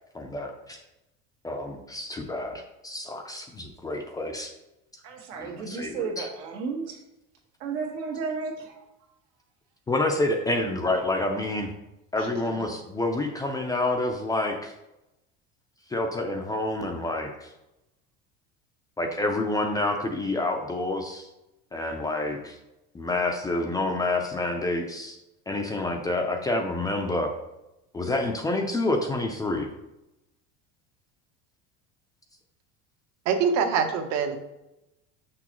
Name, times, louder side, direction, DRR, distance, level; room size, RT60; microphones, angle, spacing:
voice 1, 0.1-0.8 1.4-4.5 5.4-6.3 9.9-11.7 12.1-14.7 15.9-17.5 19.0-21.3 21.7-22.6 22.9-25.2 25.5-27.3 27.9-29.7, left 2 dB, 10° left, 3 dB, 0.4 m, -28 dB
voice 2, 5.0-7.0 7.6-8.8 12.2-12.6, right 5 dB, 85° right, 0 dB, 1.7 m, -33 dB
voice 3, 33.2-34.4, right 6 dB, 60° right, 5 dB, 1.0 m, -24 dB
6.4 x 6.1 x 3.0 m, 0.92 s
cardioid pair, 150°, 31 cm